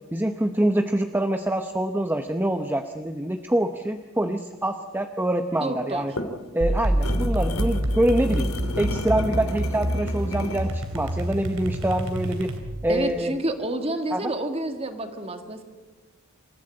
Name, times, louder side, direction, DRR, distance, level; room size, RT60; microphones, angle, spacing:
voice 1, 0.1-6.1 6.5-8.5 8.8-12.5 12.8-13.3 14.1-14.3, right 1 dB, 10° right, 6 dB, 0.8 m, -25 dB
voice 2, 5.6-6.1 12.9-15.6, right 1 dB, 30° right, 7 dB, 2.0 m, -29 dB
sound 1, 5.9-10.7, left 1 dB, 90° left, 2.9 m, -33 dB
sound 2, 6.6-13.0, right 1 dB, 75° right, 2.9 m, -27 dB
26.5 x 14.5 x 8.8 m, 1.3 s
head